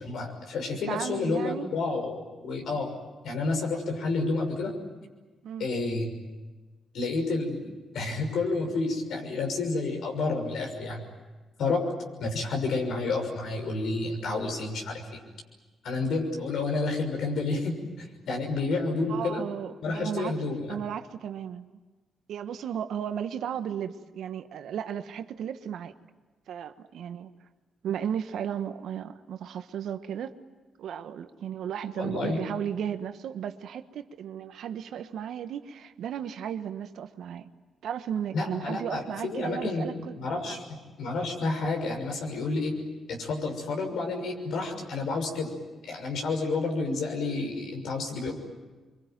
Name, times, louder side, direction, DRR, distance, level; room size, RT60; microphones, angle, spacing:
voice 1, 0.0-2.9 3.2-4.7 5.6-6.2 6.9-11.0 11.6-11.9 12.2-15.2 15.8-19.4 19.8-20.8 32.0-32.4 38.3-39.9 40.2-42.8 43.1-45.5 45.9-48.3, left 3 dB, 75° left, 2 dB, 6.3 m, -30 dB
voice 2, 0.9-1.7 5.4-5.7 19.0-20.3 20.7-21.7 22.3-25.9 26.5-27.3 27.8-30.3 30.8-37.5 37.8-40.2 40.4-40.6, right 9 dB, 75° right, 9 dB, 1.3 m, -35 dB
25.5 x 24.5 x 9.3 m, 1.3 s
supercardioid pair, 55°, 0 cm